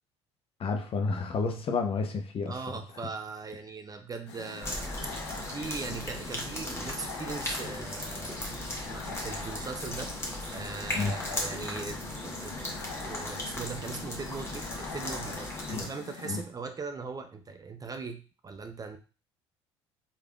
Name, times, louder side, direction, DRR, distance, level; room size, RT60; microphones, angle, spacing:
voice 1, 0.6-2.5 10.9-11.1 15.7-15.9 16.2-16.4, left 4 dB, 40° left, 5 dB, 0.6 m, -30 dB
voice 2, 2.5-10.1 10.5-19.0, right 4 dB, 25° right, 7 dB, 0.4 m, -40 dB
sound 1, 4.3-16.4, left 5 dB, 90° left, 0.5 m, -43 dB
sound 2, 4.6-15.9, left 1 dB, 20° left, 1.0 m, -37 dB
3.2 x 2.4 x 2.3 m, 0.34 s
hypercardioid pair, 65°, 14 cm